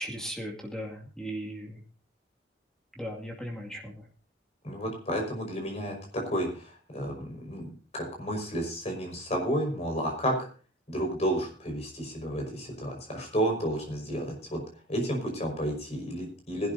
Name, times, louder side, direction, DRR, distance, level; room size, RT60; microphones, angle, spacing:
voice 1, 0.0-1.8 3.0-4.1, equal, 5° left, -1 dB, 2.3 m, -37 dB
voice 2, 4.6-10.5 10.9-14.6 14.9-16.7, equal, 35° left, 2 dB, 5.4 m, -31 dB
20.5 x 12.0 x 2.7 m, 0.37 s
head